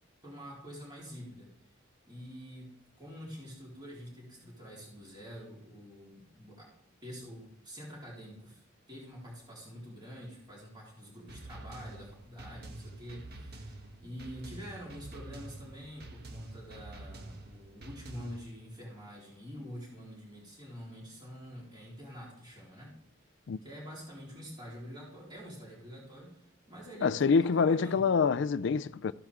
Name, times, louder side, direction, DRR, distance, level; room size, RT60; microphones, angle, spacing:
voice 1, 0.2-1.5 2.1-6.7 7.0-8.6 8.9-22.9 23.6-27.1 27.4-28.0, equal, 20° right, 4.0 m, -47 dB
sound 1, 11.3-18.5, right 1 dB, 50° right, 1.3 m, -47 dB
voice 2, 27.0-29.1, left 5 dB, 60° left, 0.4 m, -26 dB
14.5 x 10.5 x 3.7 m
head